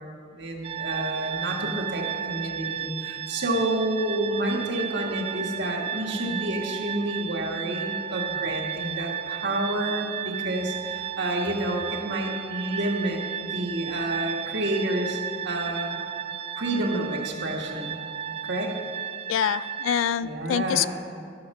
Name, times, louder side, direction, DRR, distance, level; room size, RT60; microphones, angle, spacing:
voice 1, 0.3-15.2 15.4-16.0 16.6-18.0 18.4-18.7 20.2-20.9, right 1 dB, 60° right, 1 dB, 1.6 m, -29 dB
sound 1, 0.6-20.1, right 9 dB, 30° right, 0.3 m, -34 dB
voice 2, 19.3-20.9, left 9 dB, 80° left, 17 dB, 0.3 m, -25 dB
12.5 x 6.5 x 6.6 m, 2.3 s
head